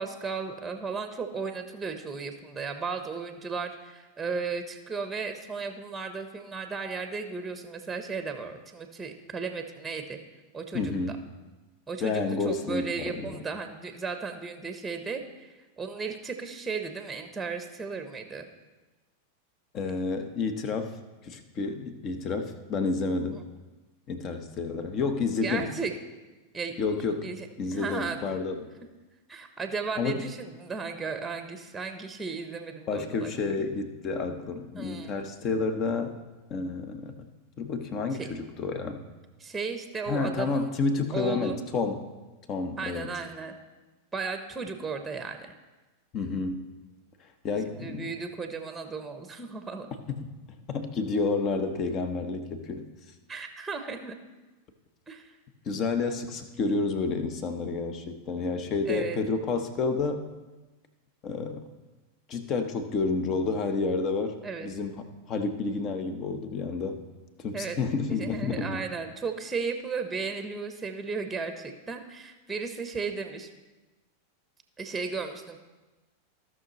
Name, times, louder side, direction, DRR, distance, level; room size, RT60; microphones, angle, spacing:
voice 1, 0.0-10.2 10.5-11.2 11.9-18.5 23.4-23.5 25.4-25.9 26.5-26.7 27.2-28.3 29.3-33.3 33.6-33.7 34.7-35.2 38.1-38.3 39.4-40.7 41.1-41.6 42.8-43.5 44.1-45.5 47.7-49.9 53.3-54.2 55.1-55.3 58.9-59.2 64.4-64.7 67.5-67.8 68.1-73.5 74.8-75.6, right 4 dB, 10° right, 7 dB, 1.0 m, -35 dB
voice 2, 10.7-11.2 12.0-13.4 19.7-21.0 21.2-23.4 24.1-25.7 26.8-27.3 27.6-28.7 30.0-30.2 32.9-36.1 36.5-37.3 37.6-39.0 40.1-42.0 42.5-43.1 46.1-46.7 47.4-48.1 50.7-52.9 55.7-60.2 61.2-61.7 62.3-64.4 64.6-65.0 65.3-67.0 67.4-68.8, left 4 dB, 35° left, 8 dB, 1.0 m, -30 dB
16.0 x 6.1 x 3.1 m, 1.2 s
figure-of-eight pair, 90°, 0 cm